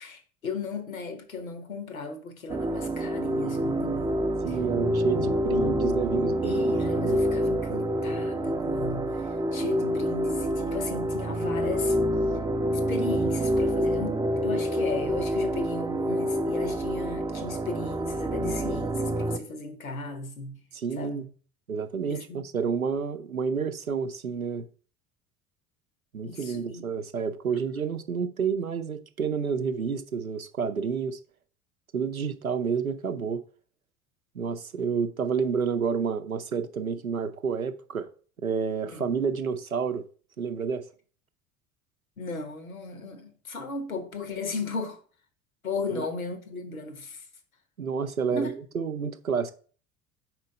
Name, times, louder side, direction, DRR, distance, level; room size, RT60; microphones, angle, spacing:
voice 1, 0.0-4.6 6.4-12.0 12.9-20.6 21.0-21.3 22.1-22.4 26.2-26.8 38.9-39.1 42.2-45.0 45.6-47.2 48.3-48.5, left 3 dB, 80° left, 1.1 m, -35 dB
sound 1, 2.5-19.4, equal, 10° right, 0.5 m, -27 dB
voice 2, 4.4-6.8 20.7-21.3 21.7-24.6 26.1-31.2 31.9-33.4 34.3-38.1 38.4-40.1 40.4-40.8 45.9-46.1 47.8-49.5, right 6 dB, 90° right, 0.6 m, -29 dB
4.4 x 4.3 x 5.3 m
figure-of-eight pair, 65°, 41 cm